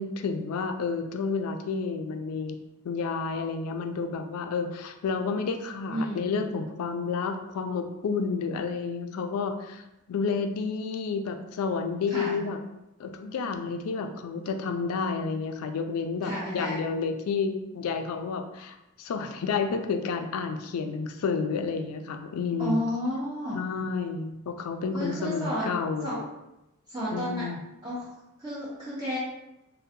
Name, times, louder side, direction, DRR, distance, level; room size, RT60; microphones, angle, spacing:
voice 1, 0.0-2.6 2.8-12.6 13.0-22.8 23.5-26.2 27.1-27.6, left 5 dB, 75° left, 6 dB, 0.3 m, -30 dB
voice 2, 5.9-6.5 12.1-12.4 16.2-16.8 22.6-23.6 24.9-25.7 26.0-26.1 26.9-27.5 27.8-28.1 28.4-29.2, equal, 20° right, -9 dB, 0.6 m, -31 dB
3.6 x 2.1 x 2.6 m, 0.92 s
head